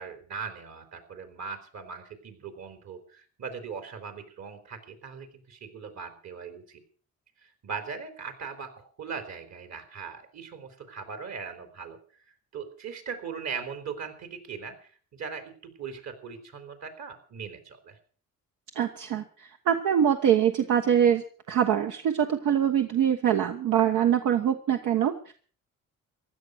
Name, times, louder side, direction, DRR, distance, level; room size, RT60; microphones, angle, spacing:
voice 1, 0.0-6.8 7.4-12.0 12.5-18.0, right 6 dB, 60° right, 8 dB, 4.1 m, -39 dB
voice 2, 18.7-25.3, right 9 dB, 85° right, 6 dB, 1.4 m, -24 dB
16.0 x 11.5 x 6.5 m, 0.44 s
cardioid pair, 90°, 30 cm